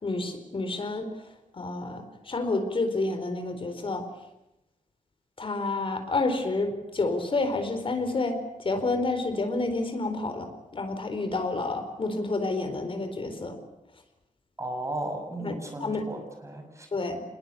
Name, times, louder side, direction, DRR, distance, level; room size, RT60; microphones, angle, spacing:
voice 1, 0.0-1.1 1.5-4.1 5.4-13.6 15.4-16.0 16.9-17.2, left 3 dB, 40° left, 7 dB, 4.3 m, -29 dB
voice 2, 14.6-16.9, right 1 dB, 20° right, 4 dB, 6.7 m, -35 dB
26.0 x 21.0 x 8.5 m, 0.89 s
wide cardioid pair, 145°, 14 cm